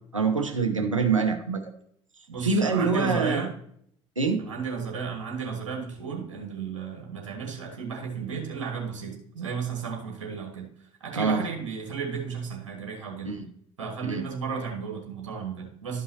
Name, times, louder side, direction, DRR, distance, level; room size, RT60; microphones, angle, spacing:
voice 1, 0.1-1.7 2.4-3.5 4.2-4.4 11.1-11.4 13.2-13.5 14.0-14.2, right 4 dB, 90° right, 5 dB, 0.8 m, -25 dB
voice 2, 2.3-3.5 4.4-10.7 11.0-13.3 13.8-16.0, right 6 dB, 75° right, 1 dB, 1.5 m, -33 dB
12.0 x 5.5 x 2.8 m, 0.66 s
figure-of-eight pair, 60°, 16 cm